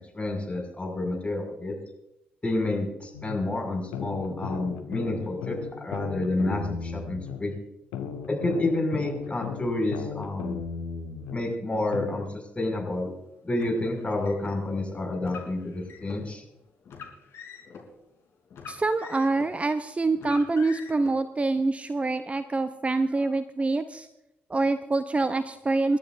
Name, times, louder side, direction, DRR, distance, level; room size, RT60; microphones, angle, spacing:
voice 1, 0.1-1.7 2.4-7.5 8.3-10.6 11.3-12.2 12.5-13.1 13.4-16.4, left 2 dB, 20° left, 1 dB, 6.4 m, -29 dB
sound 1, 3.1-3.4 3.9-7.4 7.9-11.4 11.9-12.2, left 6 dB, 70° left, 1.4 m, -35 dB
Car, 13.5-14.5 15.2-16.2 16.8-17.8 18.5-19.6 20.2-21.1, left 6 dB, 55° left, 3.6 m, -44 dB
voice 2, 18.7-24.1 24.5-26.0, right 3 dB, 25° right, 11 dB, 0.7 m, -26 dB
28.5 x 12.5 x 2.6 m, 0.87 s
figure-of-eight pair, 40°, 6 cm